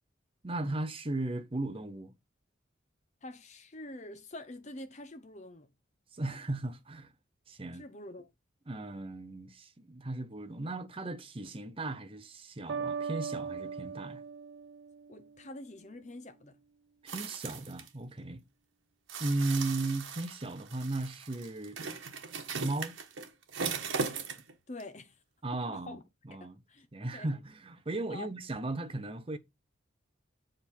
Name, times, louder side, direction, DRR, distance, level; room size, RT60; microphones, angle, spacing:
voice 1, 0.4-2.1 6.1-7.1 7.5-7.8 8.7-14.2 17.0-18.4 19.2-21.8 22.6-22.9 25.4-26.0 26.3-26.6 26.9-29.4, right 2 dB, 30° right, 0.7 m, -36 dB
voice 2, 3.2-5.7 7.7-8.3 15.1-16.6 24.7-25.2 25.5-26.0 26.4-26.9 27.1-27.3 28.1-28.3, left 1 dB, 35° left, 0.9 m, -46 dB
sound 1, 12.7-15.5, right 6 dB, 70° right, 0.4 m, -39 dB
sound 2, 17.1-17.9 19.1-24.5 24.8-24.9, right 5 dB, 85° right, 1.3 m, -38 dB
7.6 x 4.3 x 4.4 m
head